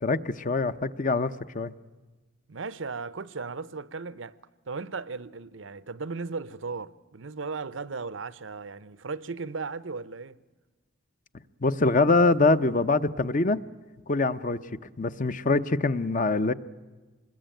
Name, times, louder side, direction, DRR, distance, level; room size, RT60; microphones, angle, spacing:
voice 1, 0.0-1.7 11.6-13.6 14.1-14.6 15.0-16.5, left 3 dB, 45° left, 0.8 m, -24 dB
voice 2, 2.5-4.4 4.7-10.4, right 4 dB, 85° right, 0.8 m, -36 dB
25.5 x 21.0 x 9.0 m
head